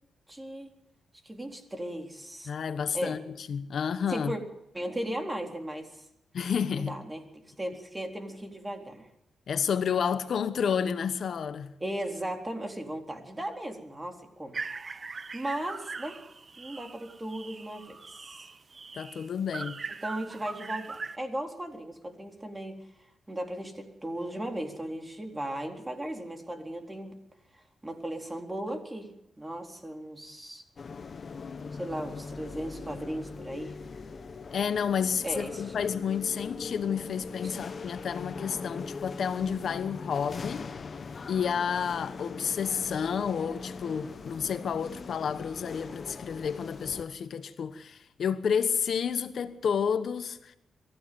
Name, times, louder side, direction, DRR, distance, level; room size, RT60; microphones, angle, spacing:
voice 1, 0.3-0.7 1.2-2.5 2.9-3.2 4.1-4.4 4.7-5.9 6.7-9.1 11.8-14.6 15.3-16.2 16.6-18.5 20.0-22.8 23.3-27.2 27.5-29.1 29.4-30.6 31.7-33.7 35.2-35.6 37.4-37.6, right 1 dB, 15° right, 4.0 m, -36 dB
voice 2, 2.5-4.3 6.3-6.9 9.5-11.7 18.9-19.8 34.5-40.7 41.3-50.6, left 7 dB, 70° left, 1.1 m, -30 dB
sound 1, 14.5-21.2, right 4 dB, 40° right, 1.0 m, -41 dB
sound 2, 30.8-47.0, left 5 dB, 50° left, 1.3 m, -41 dB
23.5 x 15.0 x 7.7 m
cardioid pair, 65°, 0 cm